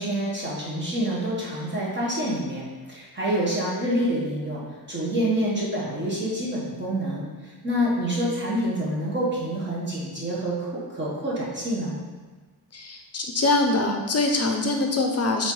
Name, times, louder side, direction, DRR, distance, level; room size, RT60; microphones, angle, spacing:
voice 1, 0.0-4.6 4.9-12.0, right 1 dB, 30° right, -6 dB, 1.4 m, -27 dB
voice 2, 12.7-15.5, left 2 dB, 40° left, 3 dB, 0.6 m, -23 dB
8.0 x 4.1 x 3.9 m, 1.3 s
wide cardioid pair, 170°, 38 cm